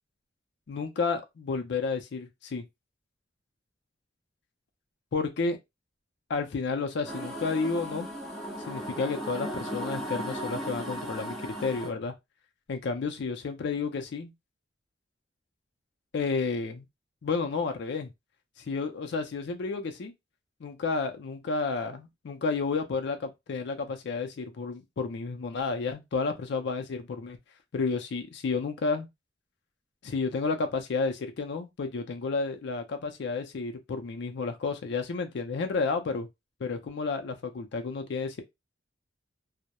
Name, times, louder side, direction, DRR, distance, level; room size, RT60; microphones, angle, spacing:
voice 1, 0.7-2.7 5.1-5.6 6.3-8.1 8.7-12.1 12.7-14.3 16.1-16.9 17.2-18.1 18.6-20.1 20.6-27.4 27.7-29.1 30.0-36.3 36.6-38.4, left 4 dB, 65° left, 0.4 m, -31 dB
sound 1, 7.0-11.9, equal, ahead, 0.5 m, -36 dB
2.2 x 2.0 x 2.8 m
head